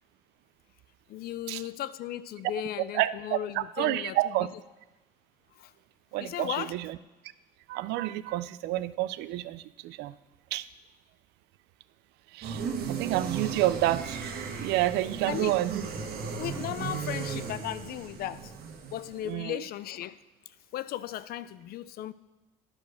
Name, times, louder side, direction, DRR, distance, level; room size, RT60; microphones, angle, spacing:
voice 1, 1.1-4.5 5.6-5.7 6.2-6.7 15.3-15.6 16.4-18.5 18.9-20.2 20.5-22.1, left 12 dB, 65° left, 16 dB, 0.4 m, -36 dB
voice 2, 2.9-4.5 6.1-7.0 7.7-10.1 10.5-10.6 12.3-15.8 19.2-19.6, right 16 dB, 85° right, 16 dB, 0.4 m, -29 dB
sound 1, 12.4-19.3, right 6 dB, 65° right, 1.3 m, -36 dB
10.5 x 4.8 x 6.3 m, 1.1 s
cardioid pair, 110°, 17 cm